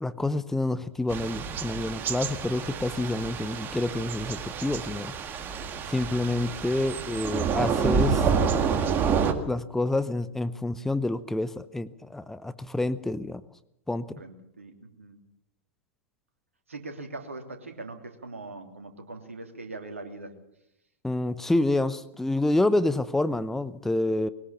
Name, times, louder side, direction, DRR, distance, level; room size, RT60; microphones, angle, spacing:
voice 1, 0.0-5.1 5.9-8.3 9.5-13.4 13.9-14.2 21.0-24.3, left 2 dB, 5° left, 15 dB, 0.8 m, -28 dB
Thunder / Rain, 1.1-9.3, right 6 dB, 30° right, 2.0 m, -28 dB
voice 2, 14.2-15.2 16.7-20.4, right 3 dB, 80° right, 5 dB, 3.0 m, -41 dB
21.5 x 19.0 x 7.0 m, 0.78 s
figure-of-eight pair, 95°, 7 cm